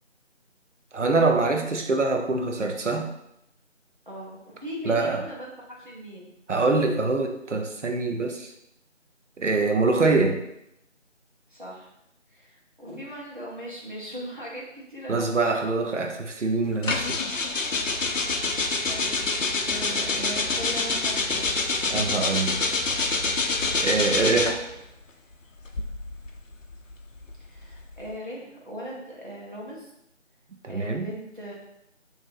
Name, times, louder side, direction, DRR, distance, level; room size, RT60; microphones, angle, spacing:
voice 1, 0.9-3.1 4.8-5.2 6.5-8.5 9.4-10.4 15.1-17.2 21.9-22.6 23.8-24.6 30.6-31.1, right 3 dB, 70° right, 3 dB, 0.6 m, -24 dB
voice 2, 4.1-6.3 11.5-11.9 12.3-15.4 18.9-21.4 27.4-29.9 30.7-31.5, equal, 40° right, -5 dB, 0.8 m, -38 dB
sound 1, 16.8-24.7 25.6-28.1, left 3 dB, 90° left, 0.6 m, -26 dB
3.9 x 2.6 x 2.5 m, 0.79 s
figure-of-eight pair, 170°, 38 cm